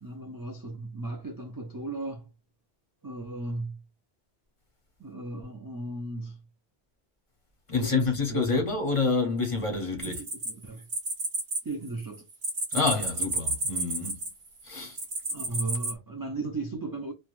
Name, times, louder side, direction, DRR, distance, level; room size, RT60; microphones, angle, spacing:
voice 1, 0.0-2.3 3.0-3.8 5.0-6.4 7.7-8.8 10.0-10.9 11.6-12.3 15.3-17.1, right 2 dB, 35° right, 0.3 m, -36 dB
voice 2, 7.7-10.2 12.7-14.2 14.6-15.0, left 4 dB, 35° left, 0.8 m, -27 dB
sound 1, 10.0-11.6 11.9-14.5 14.9-15.9, right 2 dB, 65° right, 1.1 m, -31 dB
3.1 x 2.3 x 2.4 m
omnidirectional pair, 1.1 m